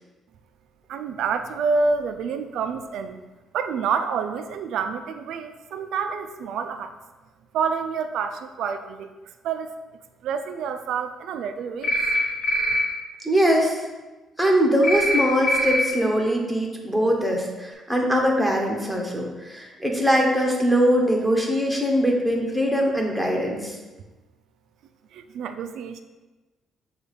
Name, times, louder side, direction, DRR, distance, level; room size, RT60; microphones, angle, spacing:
voice 1, 0.9-3.2 3.5-6.9 7.5-9.7 10.2-12.0 25.1-26.0, right 5 dB, 80° right, 8 dB, 0.3 m, -28 dB
sound 1, 11.8-12.2 12.4-12.8 14.8-15.2 15.4-15.8, equal, 65° left, 1.0 m, -23 dB
voice 2, 13.2-13.8 14.4-23.7, equal, ahead, -1 dB, 0.8 m, -22 dB
6.8 x 2.4 x 3.3 m, 1.2 s
cardioid pair, 105°, 0 cm